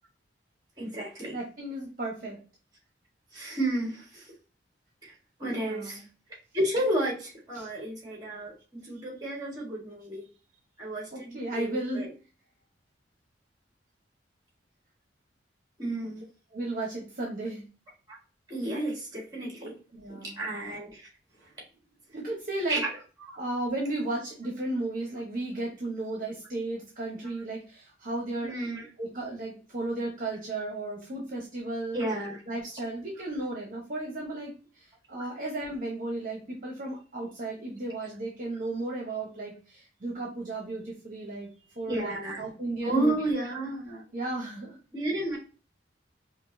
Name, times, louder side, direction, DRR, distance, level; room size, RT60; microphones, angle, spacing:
voice 1, 0.8-1.4 3.3-4.3 5.0-5.1 5.4-6.0 6.5-10.2 10.8-12.1 15.8-16.2 18.1-18.2 18.5-19.8 20.1-21.0 22.7-22.8 23.3-23.4 28.4-28.9 31.9-32.4 35.2-35.3 41.9-42.4 42.8-44.0 44.9-45.4, right 1 dB, 20° right, -2 dB, 1.6 m, -32 dB
voice 2, 1.3-2.4 5.6-6.0 7.5-7.7 11.1-12.1 16.5-17.6 19.9-20.4 22.1-22.8 23.4-28.5 29.0-32.0 32.5-41.5 41.7-43.2 44.1-44.8, right 2 dB, 45° right, -1 dB, 1.0 m, -34 dB
5.2 x 2.6 x 2.7 m, 0.35 s
head